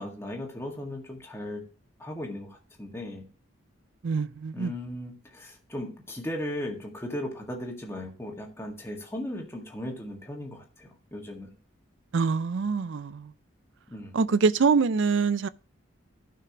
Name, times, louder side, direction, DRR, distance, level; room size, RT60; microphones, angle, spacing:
voice 1, 0.0-1.6 2.0-3.3 4.5-11.5 13.9-14.2, left 1 dB, 10° left, 1.9 m, -37 dB
voice 2, 4.0-4.7 12.1-13.3 14.1-15.5, right 5 dB, 65° right, 0.4 m, -24 dB
14.0 x 5.8 x 3.0 m
head